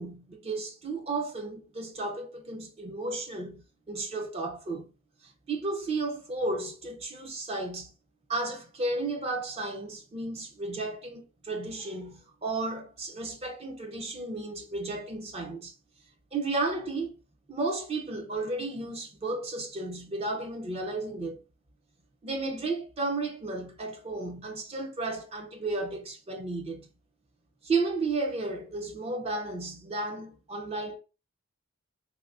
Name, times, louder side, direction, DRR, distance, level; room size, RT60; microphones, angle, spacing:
voice 1, 0.0-4.9 5.2-7.9 8.3-15.7 16.3-17.1 17.5-21.4 22.2-26.9 27.6-31.0, right 3 dB, 30° right, 0.4 m, -33 dB
3.5 x 2.6 x 2.4 m
head